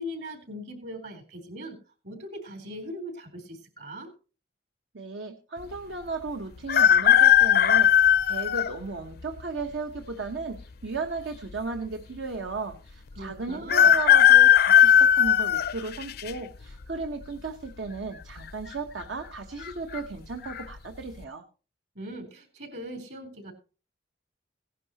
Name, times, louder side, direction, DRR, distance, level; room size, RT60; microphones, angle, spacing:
voice 1, 0.0-1.8 2.0-4.1 13.1-13.9 21.9-23.5, equal, 65° right, 5 dB, 3.9 m, -40 dB
voice 2, 4.9-21.4, right 3 dB, 85° right, 4 dB, 1.1 m, -35 dB
sound 1, 6.7-8.7 9.4-9.5 10.6-11.2 11.5-11.6 11.8-11.9 13.7-16.3 16.8-17.2 18.4-18.7 19.0-19.1 19.6-20.0 20.5-20.6, left 10 dB, 55° left, 0.5 m, -18 dB
17.5 x 10.5 x 2.9 m, 0.34 s
head